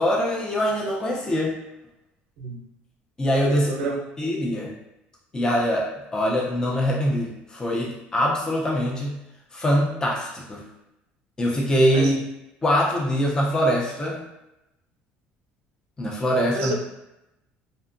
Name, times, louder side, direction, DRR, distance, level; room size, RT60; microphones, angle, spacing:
voice 1, 0.0-1.6 3.2-3.7 4.2-4.7 5.3-9.2 9.5-10.6 11.4-12.2 12.6-14.2 16.0-16.7, equal, 20° left, -3 dB, 0.5 m, -23 dB
voice 2, 3.5-4.0 11.9-12.1 16.5-16.7, right 3 dB, 80° right, 2 dB, 0.5 m, -29 dB
2.7 x 2.2 x 2.5 m, 0.90 s
cardioid pair, 130°, 4 cm